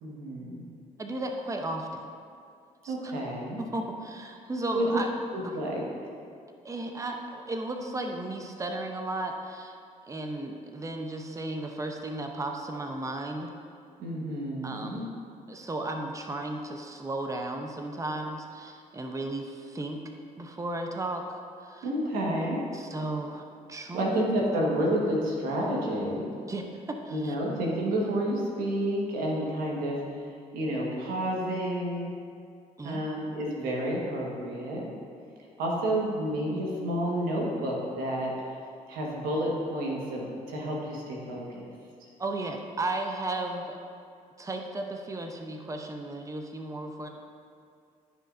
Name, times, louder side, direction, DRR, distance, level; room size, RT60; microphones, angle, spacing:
voice 1, 0.0-0.6 2.9-3.6 4.7-4.9 5.3-5.9 14.0-15.0 21.8-22.6 23.9-26.3 27.1-30.0 30.5-32.1 32.8-34.9 35.6-38.3 38.9-41.7, right 1 dB, 85° right, -2 dB, 1.5 m, -30 dB
voice 2, 1.0-2.1 2.8-3.1 3.6-5.1 5.4-5.6 6.6-9.7 10.1-13.5 14.6-15.1 15.5-20.0 20.4-21.9 22.7-23.4 23.7-24.2 26.5-27.4 32.8-33.0 42.2-43.8 44.4-47.1, right 2 dB, 20° right, 3 dB, 0.8 m, -35 dB
13.5 x 5.4 x 2.6 m, 2.4 s
supercardioid pair, 65°, 15 cm